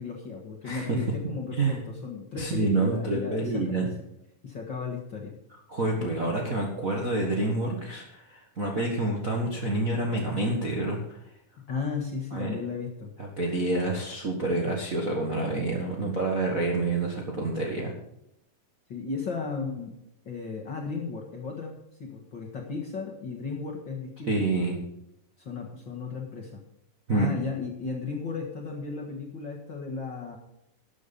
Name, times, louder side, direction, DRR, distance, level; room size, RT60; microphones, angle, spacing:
voice 1, 0.0-3.9 4.4-5.4 6.0-6.1 11.7-13.1 17.3-17.5 18.9-19.9 20.2-21.7 22.0-24.6 25.4-26.6 27.1-30.4, left 5 dB, 45° left, -1 dB, 1.7 m, -35 dB
voice 2, 2.4-3.9 5.7-11.2 12.3-12.5 13.2-17.9 24.3-24.8 27.1-27.3, right 2 dB, 40° right, -1 dB, 1.2 m, -28 dB
12.5 x 8.5 x 5.3 m, 0.81 s
omnidirectional pair, 3.9 m